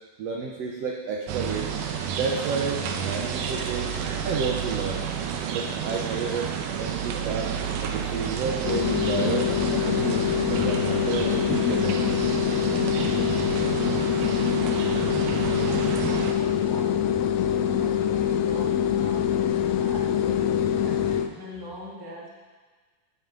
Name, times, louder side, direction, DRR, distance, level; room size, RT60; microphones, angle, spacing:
voice 1, 0.2-1.7 2.1-4.0 4.2-5.1 5.5-6.5 6.8-7.5 7.8-9.5 9.9-12.0, right 5 dB, 70° right, 1 dB, 1.6 m, -31 dB
sound 1, 1.3-16.3, right 7 dB, 85° right, 2.4 m, -30 dB
sound 2, 8.6-21.3, left 9 dB, 80° left, 1.6 m, -24 dB
voice 2, 14.8-22.3, equal, 10° right, -6 dB, 1.8 m, -41 dB
16.5 x 8.0 x 3.9 m, 1.4 s
omnidirectional pair, 3.7 m